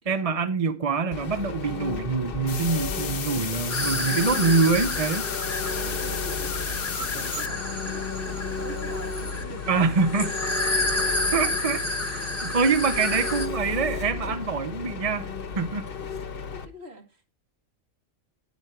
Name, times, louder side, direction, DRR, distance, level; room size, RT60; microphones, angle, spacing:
voice 1, 0.1-5.2 9.7-10.3 11.3-11.8 12.4-15.3 15.6-15.8, right 4 dB, 35° right, 0.7 m, -25 dB
Engine, 1.1-16.7, left 5 dB, 50° left, 1.1 m, -34 dB
sound 1, 2.5-7.5, left 8 dB, 65° left, 1.1 m, -34 dB
sound 2, 3.7-13.5, left 2 dB, 10° left, 1.4 m, -30 dB
voice 2, 5.2-10.2 16.0-16.1 16.5-17.2, right 2 dB, 55° right, 2.4 m, -45 dB
10.0 x 8.4 x 4.4 m
omnidirectional pair, 1.3 m